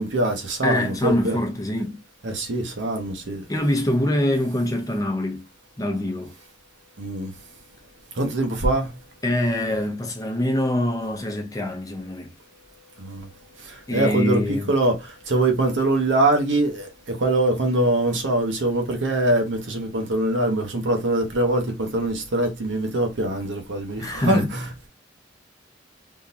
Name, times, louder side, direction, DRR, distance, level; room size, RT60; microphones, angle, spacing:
voice 1, 0.0-1.4 2.2-3.4 7.0-7.3 8.2-8.9 13.0-13.3 13.9-15.0 15.3-24.9, right 1 dB, 80° right, 1.0 m, -23 dB
voice 2, 0.6-2.0 3.5-5.4 5.8-6.3 9.2-12.3 13.9-14.7 24.0-24.5, left 1 dB, 20° left, 0.7 m, -24 dB
3.6 x 2.8 x 2.5 m
head